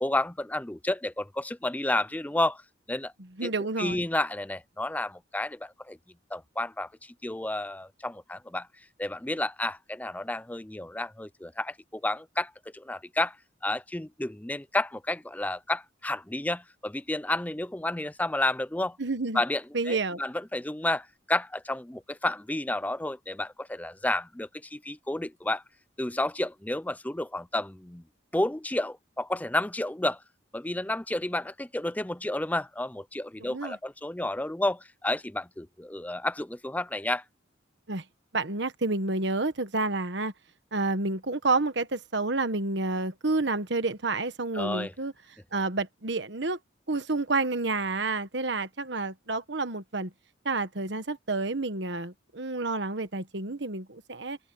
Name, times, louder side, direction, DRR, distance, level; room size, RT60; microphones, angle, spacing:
voice 1, 0.0-2.6 2.9-3.1 3.4-3.5 3.8-6.0 6.3-8.7 9.0-13.4 13.6-19.0 19.3-25.6 26.0-28.0 28.3-30.2 30.5-37.2 44.5-44.9, left 1 dB, 10° left, 0.5 m, -31 dB
voice 2, 3.4-4.0 19.0-19.4 19.7-20.2 33.4-33.8 37.9-38.0 38.3-40.3 40.7-45.1 45.5-46.6 46.9-50.1 50.4-54.4, right 3 dB, 60° right, 1.4 m, -29 dB
open air
head